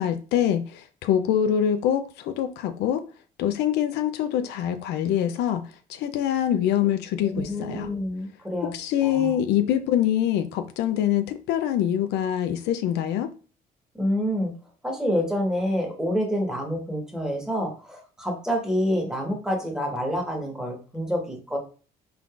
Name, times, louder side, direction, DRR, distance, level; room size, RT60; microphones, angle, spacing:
voice 1, 0.0-3.0 3.4-7.9 8.7-13.3, left 10 dB, 80° left, 0.5 m, -24 dB
voice 2, 7.2-8.7 9.0-9.4 13.9-14.5 14.8-21.6, equal, 5° right, 1.4 m, -27 dB
3.7 x 3.3 x 2.4 m
cardioid pair, 110°, 17 cm